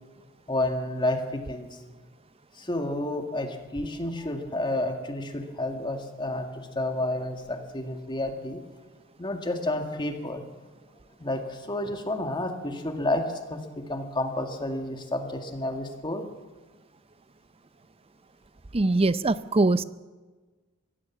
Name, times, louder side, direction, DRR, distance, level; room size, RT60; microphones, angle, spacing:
voice 1, 0.5-1.7 2.6-8.6 9.2-10.4 11.2-13.2 13.5-13.6 13.9-16.3, left 1 dB, 20° left, 5 dB, 2.0 m, -30 dB
voice 2, 18.7-19.8, right 2 dB, 25° right, 16 dB, 0.6 m, -22 dB
23.5 x 16.5 x 7.4 m, 1.3 s
head